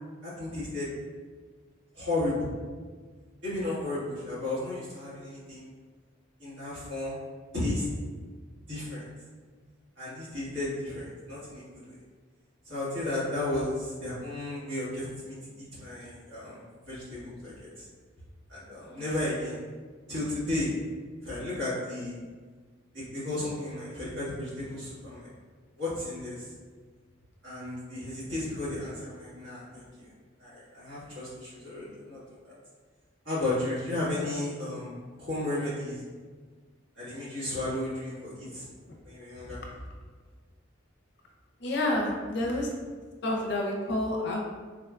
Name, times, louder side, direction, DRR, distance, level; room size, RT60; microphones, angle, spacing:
voice 1, 0.2-0.9 1.9-2.5 3.4-5.7 6.4-7.2 7.5-7.8 8.7-9.1 10.0-11.9 12.7-17.9 18.5-19.6 20.1-20.7 21.2-22.1 22.9-25.3 25.8-26.5 27.4-30.1 30.4-32.5 33.2-36.0 37.0-38.7 39.0-39.6, left 2 dB, 70° right, -10 dB, 1.5 m, -34 dB
voice 2, 41.6-42.7 43.2-44.5, left 1 dB, 60° left, -1 dB, 0.5 m, -29 dB
3.6 x 2.2 x 2.4 m, 1.5 s
head